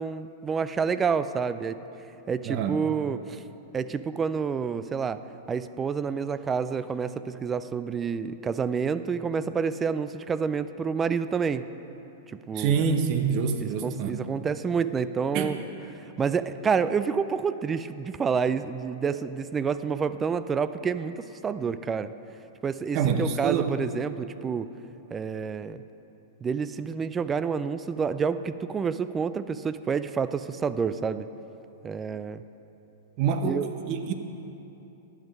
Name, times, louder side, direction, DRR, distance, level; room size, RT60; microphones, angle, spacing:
voice 1, 0.0-1.8 2.3-3.4 3.7-5.2 5.5-11.7 12.3-12.8 13.6-15.6 16.0-22.1 22.6-24.7 25.1-25.8 26.4-31.3 31.8-32.4 33.4-33.7, right 6 dB, 20° right, 13 dB, 0.3 m, -28 dB
voice 2, 2.5-2.8 12.5-14.1 15.3-15.6 22.9-23.7 33.2-34.1, right 6 dB, 45° right, 7 dB, 0.9 m, -26 dB
11.0 x 7.2 x 5.4 m, 3.0 s
hypercardioid pair, 110°, 0 cm